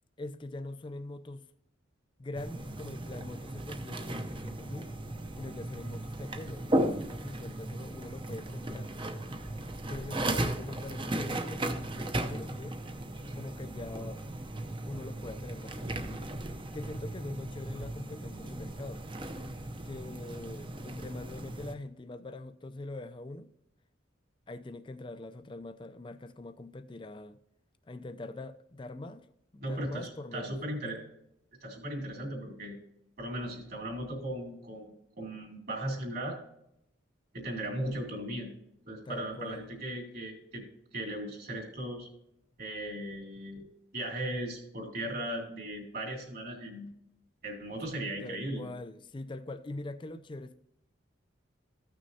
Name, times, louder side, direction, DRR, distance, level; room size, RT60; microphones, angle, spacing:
voice 1, 0.2-1.5 2.2-4.9 5.3-9.3 9.9-12.8 13.3-14.2 14.9-16.4 16.7-19.0 19.8-23.5 24.5-27.4 27.9-29.3 29.5-30.5 39.1-39.7 48.2-50.6, left 2 dB, 25° left, 0.4 m, -43 dB
sound 1, 2.3-21.7, right 1 dB, 25° right, 0.6 m, -36 dB
voice 2, 29.6-31.0 31.6-32.8 33.2-36.4 37.3-38.5 38.8-40.6 40.9-42.1 42.6-43.7 43.9-46.9 47.4-48.7, right 1 dB, 50° right, 2.8 m, -37 dB
14.5 x 6.2 x 2.8 m
head